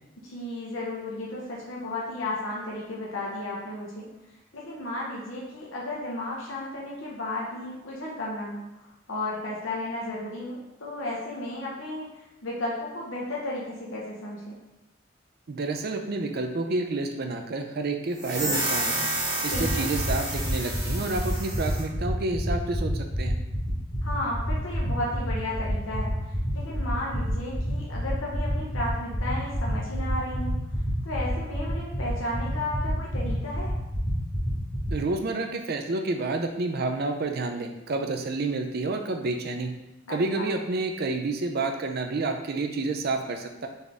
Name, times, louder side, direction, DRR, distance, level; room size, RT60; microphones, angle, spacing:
voice 1, 0.2-4.1 4.5-12.1 12.4-14.5 19.5-19.9 24.0-26.1 26.5-30.6 31.0-33.7 40.1-40.5, left 1 dB, 70° left, -5 dB, 0.8 m, -33 dB
voice 2, 15.5-19.1 19.4-23.4 34.9-39.7 40.1-43.7, right 3 dB, 50° right, 5 dB, 0.5 m, -29 dB
sound 1, 18.2-21.9, right 2 dB, 20° right, 1.1 m, -30 dB
sound 2, 19.5-34.9, equal, 25° left, 1.3 m, -30 dB
4.1 x 3.4 x 3.5 m, 0.95 s
head